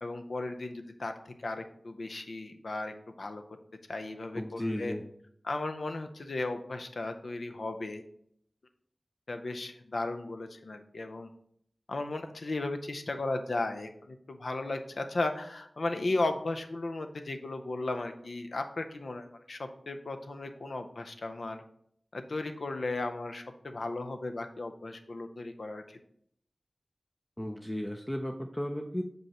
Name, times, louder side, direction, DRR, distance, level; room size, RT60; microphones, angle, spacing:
voice 1, 0.0-3.4 3.9-4.9 5.4-8.0 9.3-11.3 11.9-21.6 22.1-26.0, left 2 dB, 85° left, 7 dB, 0.5 m, -35 dB
voice 2, 4.3-5.0 27.4-29.0, equal, 15° left, 3 dB, 0.4 m, -35 dB
6.2 x 5.3 x 2.9 m, 0.68 s
wide cardioid pair, 55°, 0 cm